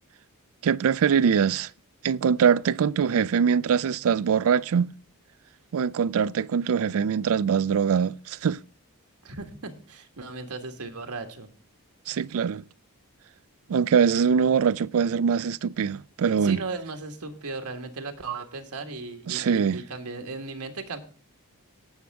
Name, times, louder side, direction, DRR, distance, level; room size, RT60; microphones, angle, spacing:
voice 1, 0.6-1.7 2.0-4.9 5.7-8.6 12.1-12.6 13.7-16.6 19.3-19.8, right 7 dB, 65° right, 0.4 m, -23 dB
voice 2, 9.2-11.5 16.4-21.0, right 3 dB, 80° right, 1.6 m, -36 dB
18.0 x 6.4 x 3.5 m
head